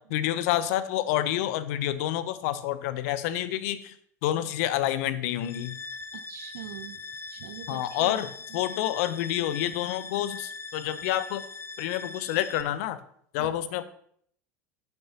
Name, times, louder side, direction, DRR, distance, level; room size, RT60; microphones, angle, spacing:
voice 1, 0.1-3.9 4.2-5.8 7.7-8.3 8.5-11.4 11.8-13.0 13.3-13.8, left 13 dB, 60° left, 14 dB, 0.7 m, -28 dB
sound 1, 5.4-12.6, left 4 dB, 25° left, 0.7 m, -41 dB
voice 2, 6.1-7.0 7.3-8.2 8.5-8.6 13.4-13.5, right 11 dB, 65° right, 11 dB, 0.7 m, -42 dB
11.0 x 7.0 x 2.9 m, 0.65 s
hypercardioid pair, 80°, 9 cm